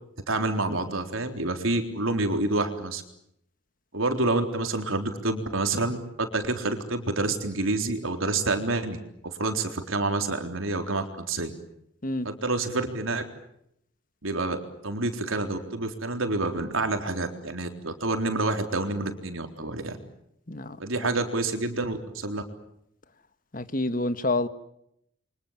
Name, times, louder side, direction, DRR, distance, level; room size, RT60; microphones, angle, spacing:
voice 1, 0.3-3.0 3.9-9.0 9.2-11.5 12.2-13.2 14.2-14.6 14.8-20.0 20.8-22.4, right 2 dB, 85° right, 3.9 m, -28 dB
voice 2, 20.5-21.1 23.5-24.5, left 2 dB, 40° left, 1.5 m, -28 dB
29.5 x 24.5 x 7.5 m
head